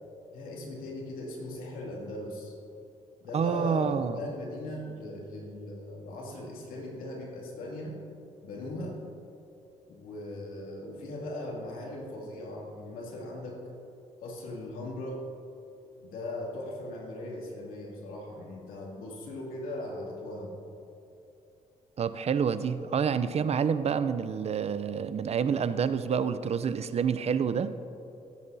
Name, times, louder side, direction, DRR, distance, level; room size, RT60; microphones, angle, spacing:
voice 1, 0.3-2.5 3.2-8.0 8.4-9.0 9.9-13.6 14.2-15.3 16.0-20.5, left 1 dB, 85° left, -2 dB, 2.5 m, -39 dB
voice 2, 3.3-4.2 22.0-27.7, right 7 dB, 50° right, 12 dB, 0.5 m, -28 dB
18.0 x 9.3 x 2.7 m, 2.7 s
cardioid pair, 70°, 14 cm